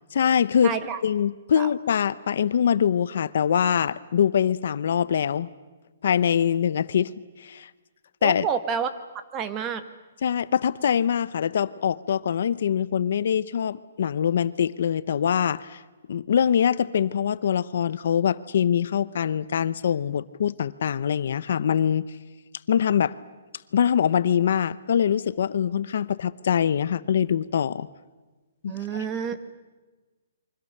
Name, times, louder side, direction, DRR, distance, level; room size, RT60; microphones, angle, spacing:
voice 1, 0.1-5.5 6.0-7.1 7.4-7.7 8.2-8.5 10.2-15.8 16.1-22.1 22.7-23.2 23.7-27.9 28.6-28.8, left 8 dB, 55° left, 16 dB, 0.7 m, -23 dB
voice 2, 0.6-1.0 1.6-1.7 8.2-8.9 9.3-9.8 28.7-29.4, right 7 dB, 15° right, 10 dB, 1.2 m, -28 dB
28.5 x 24.0 x 6.6 m, 1.2 s
hypercardioid pair, 175°, 0 cm